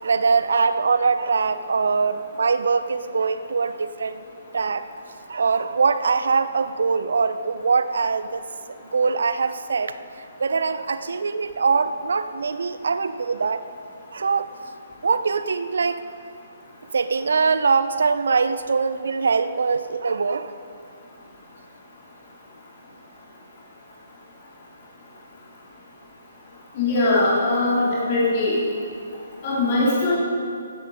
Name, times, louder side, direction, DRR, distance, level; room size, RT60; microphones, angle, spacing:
voice 1, 0.0-4.2 4.5-4.9 5.3-8.4 8.9-10.0 10.4-13.6 14.1-14.5 15.0-16.0 16.9-20.5, right 5 dB, 65° right, 12 dB, 0.7 m, -22 dB
voice 2, 26.8-28.5 29.4-30.2, left 2 dB, 40° left, -7 dB, 3.6 m, -21 dB
15.5 x 12.5 x 5.0 m, 2.4 s
figure-of-eight pair, 130°, 0 cm